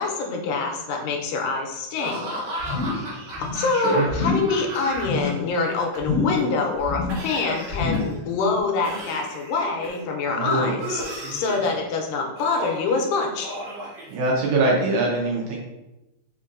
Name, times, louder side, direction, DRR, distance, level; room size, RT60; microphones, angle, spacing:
voice 1, 0.0-2.3 3.4-11.0 11.3-13.5, left 4 dB, 85° left, 2 dB, 2.2 m, -25 dB
Laughter / Cough, 2.0-5.3 5.5-6.4 7.1-8.2 8.8-10.0 10.8-11.7 12.4-12.9 13.4-14.6, right 1 dB, 60° right, 1.5 m, -34 dB
sound 1, 2.6-3.1 3.3-3.7 4.1-4.6 4.9-5.4 6.0-6.5 6.8-7.3 7.7-8.2 8.6-8.7, left 3 dB, 60° left, 0.9 m, -27 dB
voice 2, 3.7-4.1 10.3-10.8 14.1-15.6, right 2 dB, 75° right, -3 dB, 1.9 m, -23 dB
5.2 x 2.6 x 2.5 m, 0.94 s
omnidirectional pair, 3.8 m